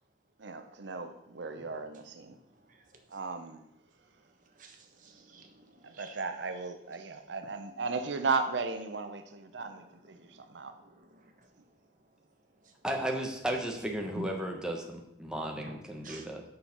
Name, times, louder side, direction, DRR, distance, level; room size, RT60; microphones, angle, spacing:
voice 1, 0.4-2.4 3.1-3.6 5.8-10.7, right 4 dB, 80° right, 8 dB, 0.7 m, -36 dB
voice 2, 4.6-6.2 9.6-9.8 10.3-11.3 14.1-14.3 15.6-15.7 16.0-16.3, right 1 dB, 45° right, 4 dB, 1.3 m, -48 dB
voice 3, 12.8-16.4, right 1 dB, 5° right, 1 dB, 0.9 m, -34 dB
6.7 x 6.3 x 5.8 m, 0.82 s
head